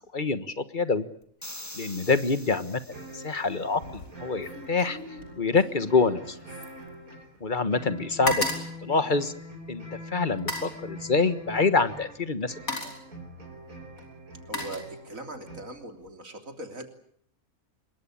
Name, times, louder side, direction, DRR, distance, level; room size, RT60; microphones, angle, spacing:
voice 1, 0.1-1.1 1.7-2.8 3.1-5.0 5.4-6.4 7.4-8.4 8.8-9.3 9.7-9.8 10.1-12.9, left 4 dB, 35° left, 12 dB, 1.5 m, -26 dB
sound 1, 1.4-3.7, left 1 dB, 10° left, 1.7 m, -44 dB
sound 2, 2.9-15.6, equal, 85° right, 5.2 m, -44 dB
sound 3, 3.7-4.1 4.4-7.5 7.8-9.7 10.3-10.8 11.8-12.0 12.4-13.1 14.0-15.4 15.7-16.1, left 2 dB, 80° left, 5.3 m, -35 dB
voice 2, 14.5-16.9, right 1 dB, 70° right, 5 dB, 3.8 m, -40 dB
25.5 x 22.5 x 8.7 m, 0.63 s
omnidirectional pair, 1.5 m